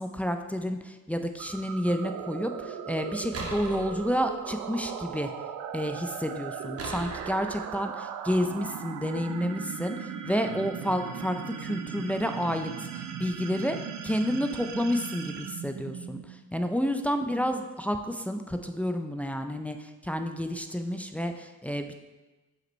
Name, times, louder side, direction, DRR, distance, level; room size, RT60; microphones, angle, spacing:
voice 1, 0.0-5.3 5.7-13.8 14.0-21.9, equal, 5° left, 6 dB, 0.5 m, -30 dB
sound 1, 1.4-16.5, right 7 dB, 70° right, 0.6 m, -38 dB
sound 2, 3.3-4.5 6.8-7.6, right 2 dB, 50° right, 1.2 m, -39 dB
7.5 x 5.2 x 3.1 m, 1.1 s
cardioid pair, 90°, 30 cm